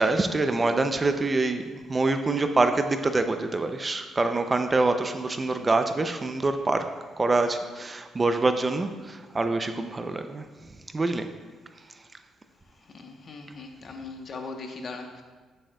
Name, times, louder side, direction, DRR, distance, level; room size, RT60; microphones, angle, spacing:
voice 1, 0.0-6.8 7.2-10.4 10.9-11.3, right 3 dB, 25° right, 7 dB, 0.4 m, -25 dB
voice 2, 12.8-15.2, left 3 dB, 50° left, 4 dB, 0.9 m, -39 dB
8.7 x 7.7 x 2.3 m, 1.4 s
cardioid pair, 90°, 0 cm